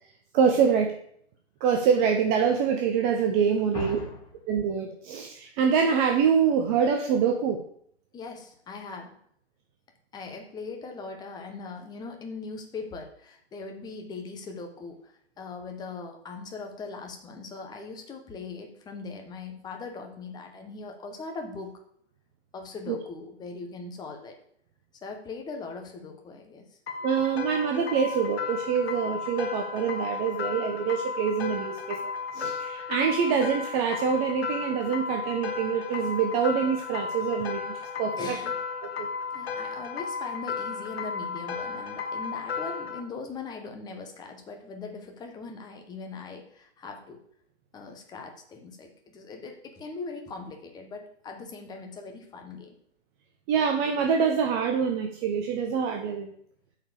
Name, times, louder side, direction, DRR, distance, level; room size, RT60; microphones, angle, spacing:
voice 1, 0.3-1.0 1.6-4.0 4.5-7.6 22.9-23.0 27.0-32.0 32.3-38.4 39.0-39.1 53.5-56.3, right 6 dB, 20° right, 3 dB, 0.6 m, -25 dB
voice 2, 3.7-4.2 8.1-9.2 10.1-21.8 22.5-24.4 25.0-26.8 38.2-38.6 39.3-47.2 47.7-52.7, left 4 dB, 10° left, 3 dB, 1.2 m, -40 dB
sound 1, 26.9-43.0, left 5 dB, 60° left, 1.3 m, -34 dB
8.7 x 4.7 x 6.6 m, 0.66 s
figure-of-eight pair, 125°, 35 cm